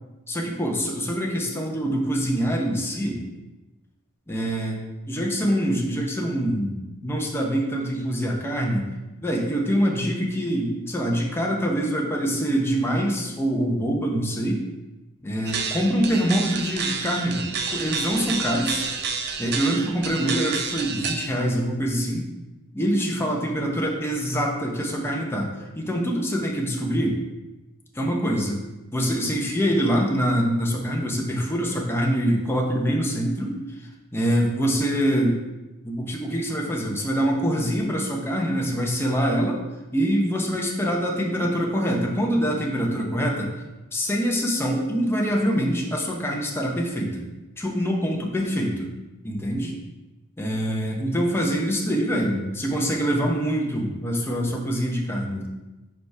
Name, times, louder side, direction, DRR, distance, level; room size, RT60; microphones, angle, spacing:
voice 1, 0.3-3.2 4.3-4.8 5.1-8.9 9.2-14.6 15.2-18.9 19.4-22.2 22.7-25.5 25.8-27.1 27.9-28.6 28.9-33.6 34.1-35.4 35.8-39.6 39.9-43.5 43.9-47.2 47.6-48.9 49.2-49.7 50.4-55.5, equal, 10° left, -1 dB, 0.8 m, -24 dB
sound 1, 15.5-21.3, right 5 dB, 50° right, 0.5 m, -29 dB
5.0 x 4.9 x 4.6 m, 1.1 s
head